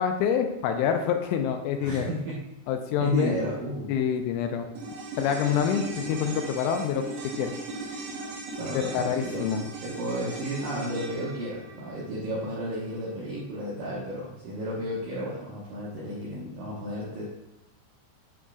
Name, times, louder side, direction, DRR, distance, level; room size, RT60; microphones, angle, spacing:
voice 1, 0.0-2.1 2.7-3.4 3.9-4.7 5.2-7.0 7.4-7.5 8.7-9.6, left 8 dB, 85° left, 5 dB, 3.0 m, -26 dB
voice 2, 1.8-2.4 3.0-4.0 8.6-9.5 9.8-17.2, right 1 dB, 80° right, -6 dB, 1.9 m, -33 dB
sound 1, 4.8-13.2 13.5-13.6, right 2 dB, 65° right, 2.2 m, -38 dB
9.9 x 5.1 x 2.3 m, 0.95 s
omnidirectional pair, 5.7 m